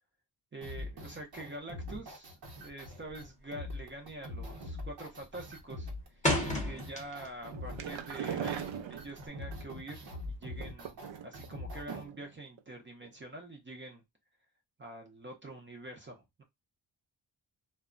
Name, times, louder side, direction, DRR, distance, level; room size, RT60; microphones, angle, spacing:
voice 1, 0.5-5.9 6.4-11.0 11.2-14.0 14.8-16.4, right 1 dB, 25° right, 0.6 m, -46 dB
sound 1, 0.6-12.0, left 1 dB, 55° right, 0.9 m, -43 dB
sound 2, 3.0-3.4 3.7-4.1 4.4-4.8 5.2-7.5 7.8-9.3, left 1 dB, 15° left, 0.8 m, -33 dB
sound 3, 7.4-9.5 10.5-11.5 11.9-12.3 12.6-12.7 13.0-13.1, right 8 dB, 85° right, 0.5 m, -39 dB
2.2 x 2.1 x 3.6 m
wide cardioid pair, 160°, 45 cm